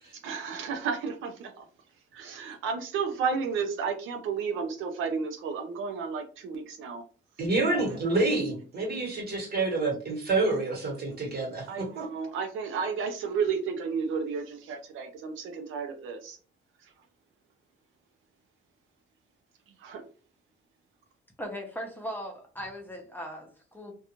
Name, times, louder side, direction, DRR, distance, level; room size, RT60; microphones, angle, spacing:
voice 1, 0.1-1.7 2.1-7.0 7.7-8.0 11.7-16.4 16.8-16.9 19.8-20.0, right 5 dB, 85° right, 5 dB, 0.5 m, -32 dB
voice 2, 7.4-12.1, right 2 dB, 50° right, 1 dB, 1.3 m, -28 dB
voice 3, 21.4-23.9, equal, 10° left, 2 dB, 0.7 m, -38 dB
2.4 x 2.3 x 2.9 m, 0.38 s
cardioid pair, 90°, 20 cm